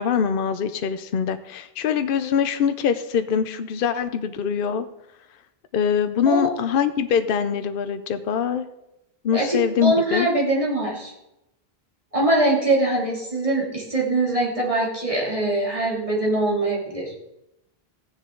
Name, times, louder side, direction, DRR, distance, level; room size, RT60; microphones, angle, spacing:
voice 1, 0.0-4.9 5.7-8.7 9.2-10.3, left 7 dB, 60° left, 10 dB, 0.8 m, -23 dB
voice 2, 9.3-11.1 12.1-17.3, right 2 dB, 30° right, -4 dB, 2.8 m, -23 dB
14.5 x 9.7 x 3.8 m, 0.89 s
omnidirectional pair, 1.1 m